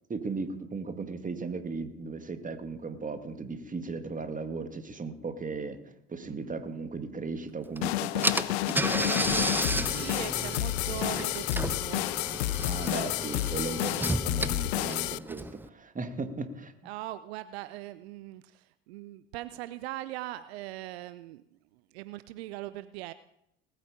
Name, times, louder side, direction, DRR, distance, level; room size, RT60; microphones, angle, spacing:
voice 1, 0.1-5.8 6.1-9.6 12.6-16.7, right 4 dB, 25° right, 8 dB, 2.0 m, -36 dB
voice 2, 6.2-6.6 8.4-8.6 9.8-12.4 16.8-21.4 21.7-23.1, right 16 dB, 75° right, 15 dB, 0.6 m, -41 dB
sound 1, 7.8-15.2, left 17 dB, 75° left, 0.5 m, -30 dB
Car / Engine, 7.8-7.9 8.2-15.7, right 2 dB, 5° right, 0.8 m, -33 dB
19.5 x 9.1 x 5.1 m, 0.80 s
hypercardioid pair, 60°, 32 cm